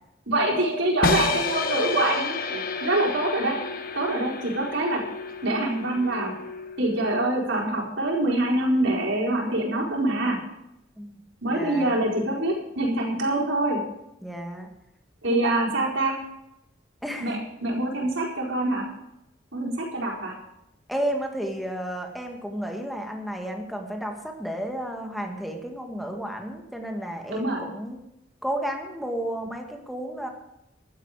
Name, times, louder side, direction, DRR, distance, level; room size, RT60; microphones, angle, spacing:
voice 1, 0.3-3.6 3.9-5.0 5.4-6.3 6.8-10.4 11.4-13.8 15.2-16.1 17.2-18.8 19.5-20.3 27.3-27.6, right 1 dB, 80° right, -2 dB, 4.4 m, -25 dB
sound 1, 1.0-7.0, left 4 dB, 50° left, 1.2 m, -30 dB
voice 2, 11.5-12.0 14.2-14.7 15.3-15.5 17.0-17.4 20.9-28.0 28.4-30.3, right 1 dB, ahead, 2 dB, 2.0 m, -32 dB
15.0 x 12.5 x 5.0 m, 0.86 s
head